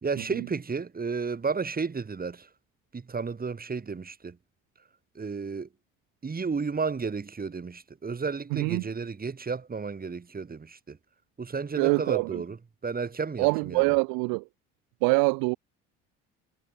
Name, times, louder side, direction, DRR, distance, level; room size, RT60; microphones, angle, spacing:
voice 1, 0.0-2.5 2.9-4.4 5.1-5.7 6.2-11.0 11.4-12.6 12.8-13.9, right 5 dB, 25° right, 2.9 m, -32 dB
voice 2, 8.5-8.8 11.8-12.4 13.4-14.4 15.0-15.6, right 33 dB, 65° right, 1.0 m, -24 dB
hypercardioid pair, 60°, 38 cm